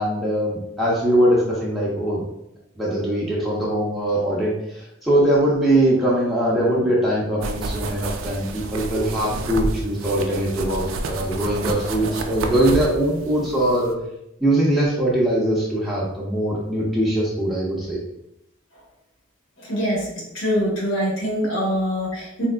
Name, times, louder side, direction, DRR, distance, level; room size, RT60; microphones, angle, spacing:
voice 1, 0.0-2.2 2.8-13.9 14.4-18.0, right 1 dB, ahead, -6 dB, 0.6 m, -21 dB
sound 1, 7.4-13.9, right 2 dB, 75° right, 0.4 m, -30 dB
voice 2, 19.6-20.1 20.3-22.5, equal, 70° left, -3 dB, 0.9 m, -24 dB
3.4 x 2.8 x 2.2 m, 0.82 s
head